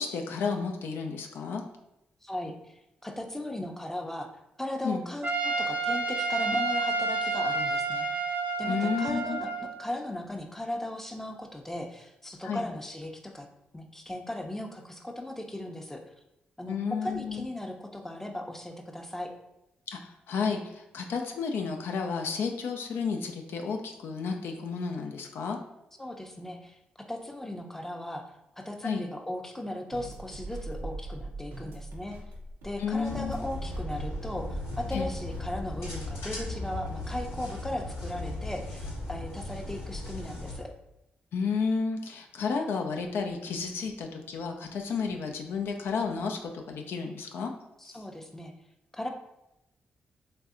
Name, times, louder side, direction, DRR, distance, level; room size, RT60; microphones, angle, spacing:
voice 1, 0.0-1.6 4.8-5.0 8.7-9.4 12.4-12.7 16.7-17.5 19.9-25.6 28.8-29.0 32.8-33.4 34.9-35.1 41.3-47.5 47.8-48.0, left 5 dB, 75° left, 3 dB, 0.3 m, -32 dB
voice 2, 2.2-2.5 3.0-4.3 4.6-8.1 8.6-9.5 9.8-13.5 13.7-16.0 16.6-19.3 26.0-28.2 28.6-32.2 32.6-40.7 47.8-48.5 48.9-49.1, left 1 dB, 10° left, 3 dB, 0.5 m, -37 dB
Trumpet, 5.2-9.8, right 3 dB, 40° right, 0.6 m, -30 dB
sound 1, 29.9-36.2, right 2 dB, 90° right, 0.5 m, -41 dB
sound 2, 33.0-40.6, left 2 dB, 90° left, 0.9 m, -37 dB
3.2 x 2.6 x 2.4 m, 0.87 s
supercardioid pair, 50°, 4 cm